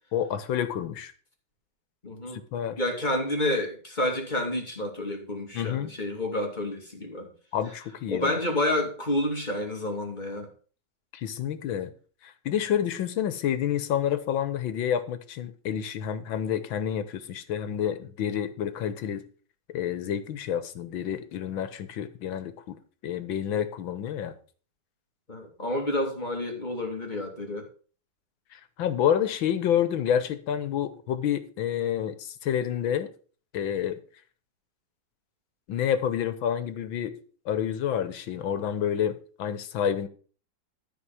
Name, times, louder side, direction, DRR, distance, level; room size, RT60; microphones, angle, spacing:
voice 1, 0.1-1.1 2.3-2.8 5.5-5.9 7.5-8.4 11.1-11.9 12.2-19.2 19.7-24.3 28.5-33.1 33.5-34.0 35.7-37.1 37.5-40.1, left 9 dB, 90° left, 1.8 m, -29 dB
voice 2, 2.0-2.4 2.8-7.3 8.1-10.5 25.3-27.7, left 1 dB, 25° left, 2.4 m, -29 dB
13.0 x 4.8 x 7.0 m
omnidirectional pair, 2.1 m